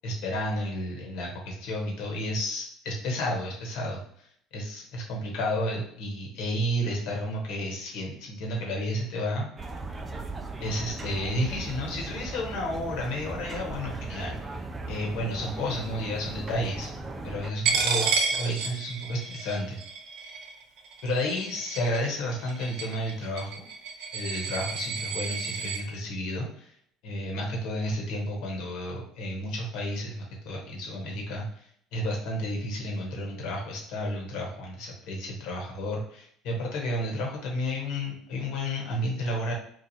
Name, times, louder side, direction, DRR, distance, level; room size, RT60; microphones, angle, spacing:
voice 1, 0.0-9.5 10.6-14.5 14.9-16.9 17.2-19.8 21.0-23.5 24.1-26.7 27.0-39.5, left 1 dB, 70° left, -1 dB, 1.3 m, -32 dB
sound 1, 9.6-17.5, right 3 dB, 20° right, 0.5 m, -38 dB
Coin (dropping), 17.7-25.8, right 5 dB, 75° right, 0.7 m, -31 dB
3.1 x 2.3 x 4.1 m, 0.63 s
supercardioid pair, 85°, 0 cm